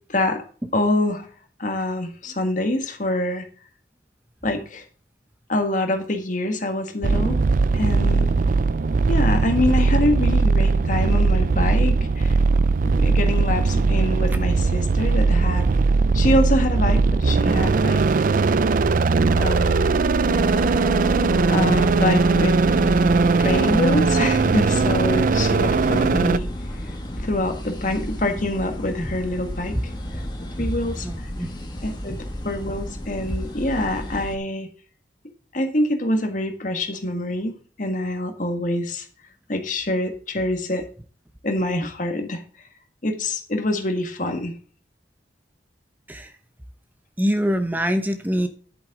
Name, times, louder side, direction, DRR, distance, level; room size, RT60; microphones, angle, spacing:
voice 1, 0.1-0.4 0.7-1.3 1.6-3.4 4.4-4.8 5.5-7.4 7.7-8.3 9.1-12.4 12.8-15.7 16.1-18.0 19.3-19.9 21.5-22.6 23.4-26.5 27.2-29.9 30.4-31.1 31.8-32.2 32.4-34.7 35.5-39.0 39.5-40.8 41.4-42.4 43.0-44.5, left 1 dB, 45° left, 5 dB, 1.7 m, -25 dB
sound 1, 7.0-26.4, right 4 dB, 50° right, 0.4 m, -19 dB
sound 2, 20.3-34.4, left 1 dB, 25° left, 1.8 m, -32 dB
voice 2, 31.0-31.5 46.1-46.3 47.2-48.5, equal, 10° right, 8 dB, 0.8 m, -24 dB
10.5 x 8.7 x 3.7 m, 0.42 s
head